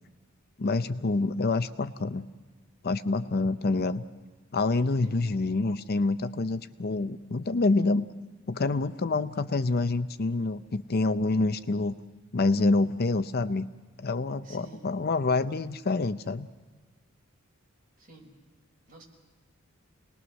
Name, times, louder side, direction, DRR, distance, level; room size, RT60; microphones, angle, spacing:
voice 1, 0.6-2.3 2.8-4.0 4.5-8.1 8.5-11.9 12.3-13.7 14.0-16.5, left 3 dB, 50° left, 12 dB, 0.6 m, -27 dB
voice 2, 14.4-14.9 18.0-18.4 18.9-19.0, right 2 dB, 40° right, -1 dB, 5.4 m, -51 dB
28.5 x 20.0 x 6.3 m, 1.4 s
head